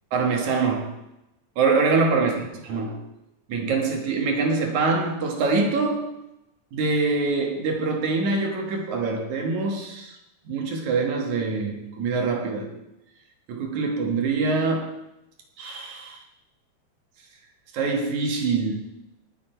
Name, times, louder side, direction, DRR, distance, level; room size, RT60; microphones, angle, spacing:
voice 1, 0.1-0.9 1.6-3.0 3.5-6.2 6.7-10.2 10.5-12.8 13.5-15.0 15.6-16.2 17.7-18.8, right 4 dB, 65° right, 2.8 m, -24 dB
18.5 x 7.8 x 4.5 m
omnidirectional pair, 3.8 m